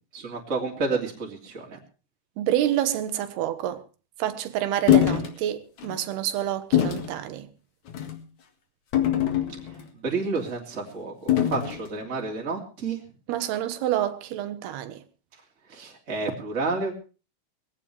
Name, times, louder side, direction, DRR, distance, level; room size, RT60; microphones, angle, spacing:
voice 1, 0.1-1.8 9.6-13.0 15.7-16.9, right 3 dB, 20° right, 2.8 m, -30 dB
voice 2, 2.4-3.8 4.2-7.5 13.3-15.0, right 12 dB, 85° right, 3.2 m, -28 dB
sound 1, 4.9-5.3 5.8-6.0 6.7-7.1 7.9-8.2 8.9-9.8 11.3-11.8, left 11 dB, 55° left, 2.9 m, -22 dB
20.5 x 16.0 x 3.4 m
omnidirectional pair, 4.5 m